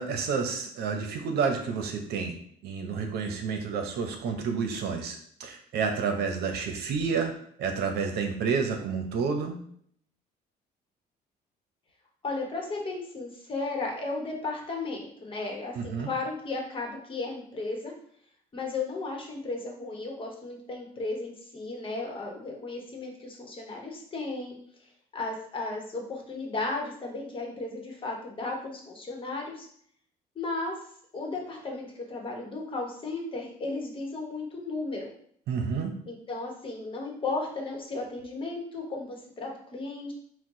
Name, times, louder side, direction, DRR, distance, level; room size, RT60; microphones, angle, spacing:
voice 1, 0.0-2.4 2.6-7.3 7.6-9.6 15.7-16.1 35.5-35.9, right 5 dB, 75° right, 5 dB, 0.8 m, -30 dB
voice 2, 12.2-17.9 18.5-24.6 25.1-29.7 30.3-30.7 31.1-35.1 36.1-40.1, left 3 dB, 30° left, 0 dB, 1.1 m, -35 dB
4.4 x 2.3 x 3.7 m, 0.63 s
cardioid pair, 110°, 17 cm